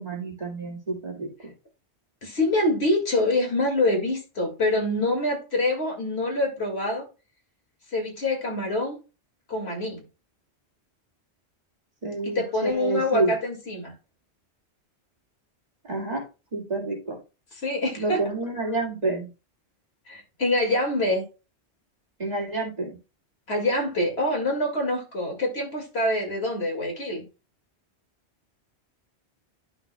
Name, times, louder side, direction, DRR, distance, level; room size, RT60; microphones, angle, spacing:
voice 1, 0.0-1.5 12.0-13.3 15.8-16.2 16.5-17.2 18.0-19.3 22.2-23.0, right 2 dB, 35° right, -1 dB, 2.0 m, -29 dB
voice 2, 2.2-7.1 7.9-9.0 9.5-10.0 12.2-13.9 17.5-18.2 20.1-21.2 23.5-27.3, left 1 dB, 65° left, 1 dB, 2.3 m, -25 dB
11.0 x 6.1 x 2.2 m, 0.30 s
omnidirectional pair, 1.1 m